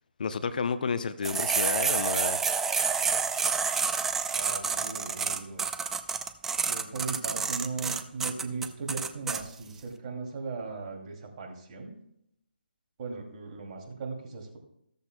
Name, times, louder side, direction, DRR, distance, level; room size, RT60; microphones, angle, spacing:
voice 1, 0.2-2.4, left 5 dB, 50° left, 12 dB, 0.7 m, -31 dB
sound 1, 1.2-9.4, right 5 dB, 5° right, 0.4 m, -28 dB
voice 2, 4.3-5.6 6.6-11.9 13.0-14.6, right 4 dB, 35° right, 1 dB, 2.6 m, -37 dB
14.5 x 13.5 x 2.2 m, 0.78 s
figure-of-eight pair, 145°, 6 cm